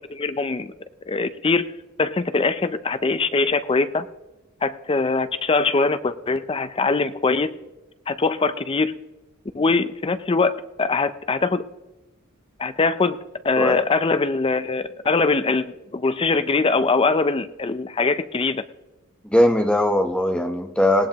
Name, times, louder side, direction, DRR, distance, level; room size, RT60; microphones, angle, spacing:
voice 1, 0.1-0.7 1.1-1.7 2.0-4.1 4.6-7.6 8.1-8.9 9.5-11.7 12.6-18.6, left 3 dB, 25° left, 12 dB, 0.4 m, -22 dB
voice 2, 19.3-21.1, left 1 dB, 5° left, 4 dB, 0.8 m, -19 dB
19.0 x 18.5 x 2.9 m, 1.1 s
head